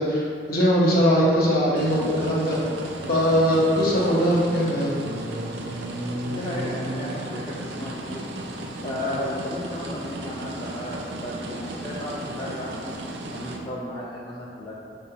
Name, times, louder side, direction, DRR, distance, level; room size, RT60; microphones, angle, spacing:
voice 1, 0.0-2.6 3.1-5.0, equal, 55° left, -5 dB, 1.0 m, -21 dB
sound 1, 1.7-13.6, right 1 dB, 75° right, 0.5 m, -34 dB
voice 2, 6.2-8.2 8.5-13.0 13.3-14.7, left 1 dB, 25° left, -6 dB, 0.4 m, -34 dB
5.4 x 3.5 x 2.8 m, 2.4 s
head